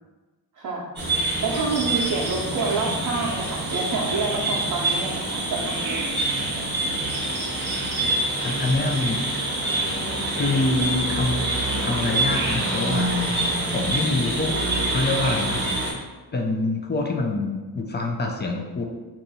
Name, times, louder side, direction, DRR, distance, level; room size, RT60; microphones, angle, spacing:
sound 1, 1.0-15.9, right 2 dB, 25° right, 0.8 m, -26 dB
voice 1, 1.4-6.2 10.5-10.8 14.1-14.5, right 3 dB, 55° right, -4 dB, 0.6 m, -28 dB
voice 2, 8.4-9.2 10.4-11.5 11.8-13.1 13.7-14.5 14.9-15.6 16.3-18.8, left 2 dB, 25° left, 2 dB, 0.4 m, -25 dB
2.7 x 2.3 x 4.0 m, 1.2 s
cardioid pair, 90°, 40 cm